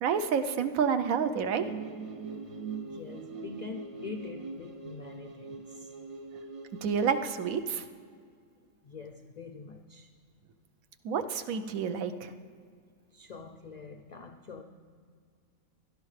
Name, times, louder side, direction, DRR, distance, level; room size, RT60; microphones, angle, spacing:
voice 1, 0.0-1.7 6.8-7.8 11.0-12.3, right 6 dB, 85° right, 9 dB, 1.1 m, -29 dB
sound 1, 1.6-7.5, right 4 dB, 60° right, 0.3 m, -42 dB
voice 2, 2.8-5.9 8.8-10.1 13.1-14.6, left 4 dB, 80° left, 6 dB, 0.3 m, -44 dB
17.0 x 12.0 x 3.2 m, 2.1 s
omnidirectional pair, 1.4 m